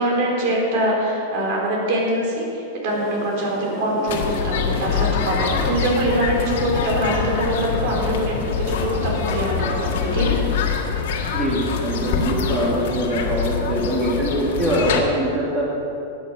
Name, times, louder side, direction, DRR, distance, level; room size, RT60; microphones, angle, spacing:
voice 1, 0.0-10.4, right 1 dB, 50° right, -1 dB, 3.8 m, -23 dB
sound 1, 2.9-10.6, left 2 dB, 20° left, 2.0 m, -33 dB
sound 2, 4.1-15.0, left 6 dB, 65° left, 1.7 m, -25 dB
voice 2, 11.3-15.7, right 1 dB, 20° right, -4 dB, 2.3 m, -23 dB
12.5 x 9.4 x 6.2 m, 2.6 s
supercardioid pair, 155°, 0 cm